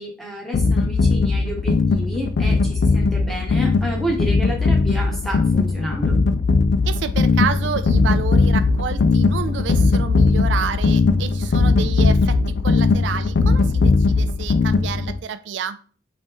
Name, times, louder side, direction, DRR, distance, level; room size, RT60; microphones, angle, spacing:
voice 1, 0.0-6.2, right 1 dB, ahead, -1 dB, 1.0 m, -30 dB
sound 1, 0.5-15.2, left 4 dB, 70° left, 0.3 m, -18 dB
voice 2, 6.9-15.8, right 7 dB, 80° right, 11 dB, 0.4 m, -29 dB
3.9 x 3.2 x 3.6 m, 0.40 s
head